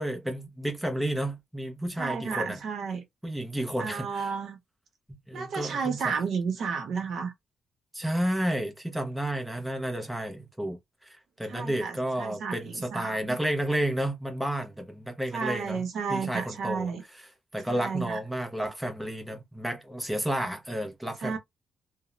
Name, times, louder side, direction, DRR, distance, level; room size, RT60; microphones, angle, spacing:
voice 1, 0.0-2.6 3.2-4.3 5.3-6.1 7.9-15.8 16.1-16.9 17.5-21.4, right 1 dB, 5° right, 0.5 m, -31 dB
voice 2, 2.0-3.0 3.8-4.6 5.3-7.3 11.5-13.4 15.3-17.0 17.7-18.2 21.2-21.4, right 5 dB, 60° right, 0.7 m, -32 dB
2.4 x 2.0 x 2.9 m
wide cardioid pair, 155°, 0 cm